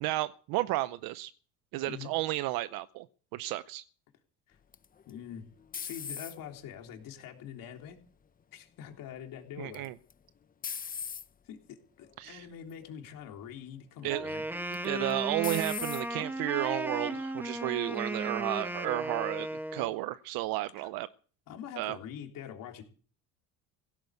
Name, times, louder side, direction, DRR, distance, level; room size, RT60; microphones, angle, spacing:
voice 1, 0.0-1.3 1.7-3.1 3.3-3.8 9.6-9.9 12.2-12.5 14.0-14.3 14.8-21.1 21.8-22.0, right 17 dB, 70° right, 15 dB, 0.7 m, -32 dB
sound 1, 4.7-6.6 7.2-7.7 9.7-10.1 10.6-11.3 12.0-12.3 12.7-12.8 14.7-15.1 15.4-16.0, left 7 dB, 25° left, 0.7 m, -39 dB
voice 2, 5.1-5.5 5.8-8.0 8.5-9.9 11.5-14.4 20.8-20.9 21.5-22.8, left 9 dB, 60° left, 3 dB, 3.4 m, -44 dB
Wind instrument woodwind instrument, 14.1-20.0, right 1 dB, 5° right, 1.7 m, -35 dB
16.5 x 8.7 x 8.2 m, 0.42 s
supercardioid pair, 95°, 37 cm